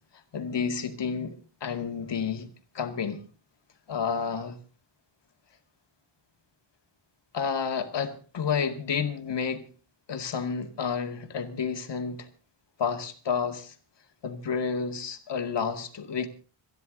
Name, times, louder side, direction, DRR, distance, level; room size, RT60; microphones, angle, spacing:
voice 1, 0.3-2.5 2.7-3.2 3.9-4.6 7.3-9.7 10.1-12.3 12.8-13.7 14.2-16.3, left 6 dB, 60° left, 2.3 m, -30 dB
27.0 x 10.5 x 3.8 m
wide cardioid pair, 115°, 48 cm